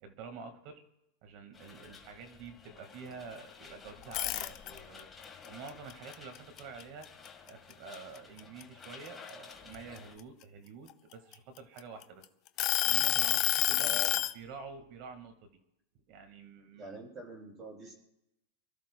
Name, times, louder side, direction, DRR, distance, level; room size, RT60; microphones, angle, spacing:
voice 1, 0.0-0.8 1.2-5.1 5.5-7.2 7.4-12.2 12.8-14.1 14.3-15.5 16.1-16.9, right 5 dB, 45° right, 8 dB, 1.7 m, -48 dB
sound 1, 1.5-10.2, left 5 dB, 10° left, 1.6 m, -53 dB
sound 2, 4.0-5.0 5.4-7.3 7.7-7.9 8.4-10.2 10.9-12.0 12.6-14.3, left 16 dB, 35° left, 0.6 m, -29 dB
voice 2, 13.8-14.2 16.7-17.9, right 2 dB, 25° right, -2 dB, 7.0 m, -45 dB
29.5 x 13.0 x 2.3 m, 0.85 s
supercardioid pair, 155°, 0 cm